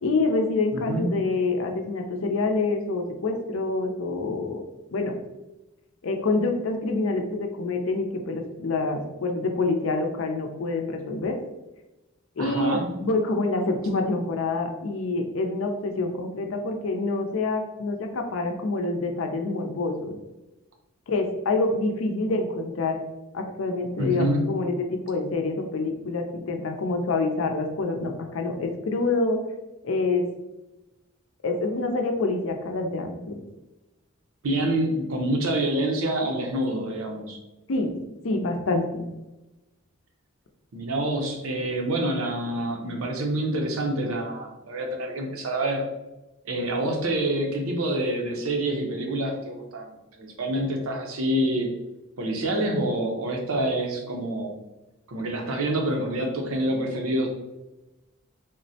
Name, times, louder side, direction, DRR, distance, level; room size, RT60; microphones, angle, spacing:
voice 1, 0.0-4.6 4.9-5.1 6.0-11.3 12.4-20.2 21.1-23.0 23.3-29.4 29.8-30.2 31.4-33.4 37.7-37.9 38.2-39.1, left 3 dB, 70° left, 4 dB, 0.5 m, -26 dB
voice 2, 0.7-1.2 12.4-12.9 24.0-24.5 34.4-37.4 40.7-45.8 46.4-51.7 52.2-54.5 55.1-57.3, right 1 dB, 80° right, 2 dB, 0.6 m, -27 dB
3.6 x 2.1 x 2.7 m, 1.0 s
head